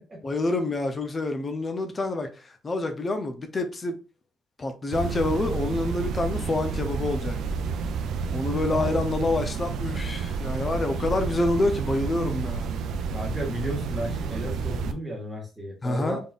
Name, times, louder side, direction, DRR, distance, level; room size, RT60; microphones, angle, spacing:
voice 1, 0.2-2.3 2.6-4.0 4.6-7.4 8.3-12.7 15.8-16.2, left 2 dB, 25° left, 0.6 m, -27 dB
sound 1, 4.9-14.9, right 5 dB, 85° right, 0.4 m, -30 dB
voice 2, 13.1-16.2, equal, 10° right, 1.4 m, -33 dB
4.1 x 3.6 x 2.4 m
cardioid pair, 170°, 0 cm